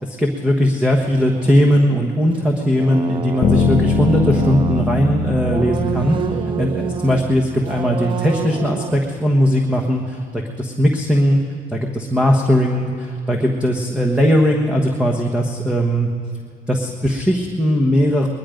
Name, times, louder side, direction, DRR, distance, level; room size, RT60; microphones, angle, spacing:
voice 1, 0.0-11.4 11.7-16.1 16.7-18.3, equal, 5° right, 2 dB, 1.2 m, -18 dB
sound 1, 1.0-5.1 5.4-7.3 7.6-9.1, right 7 dB, 30° right, 0.4 m, -29 dB
Bass guitar, 3.4-7.8, left 3 dB, 45° left, 1.2 m, -21 dB
21.5 x 11.5 x 5.1 m, 2.3 s
cardioid pair, 110°, 17 cm